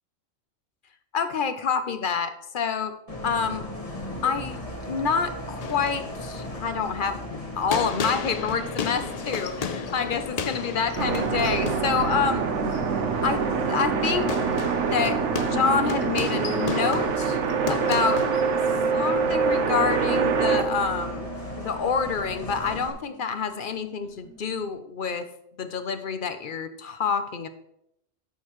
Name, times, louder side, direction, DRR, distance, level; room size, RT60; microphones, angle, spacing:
voice 1, 1.1-3.0 3.2-3.7 4.2-12.4 13.2-14.4 14.9-17.4 17.7-18.2 18.9-21.3 21.6-25.3 25.6-27.5, left 6 dB, 50° left, 10 dB, 0.7 m, -27 dB
Bus, 3.1-22.9, equal, 25° left, 1.4 m, -37 dB
sound 1, 5.6-20.2, left 6 dB, 80° left, 0.3 m, -35 dB
sound 2, 11.0-21.6 23.4-23.6 24.4-24.7, right 6 dB, 65° right, 1.1 m, -25 dB
13.0 x 6.6 x 3.1 m, 0.77 s
omnidirectional pair, 1.4 m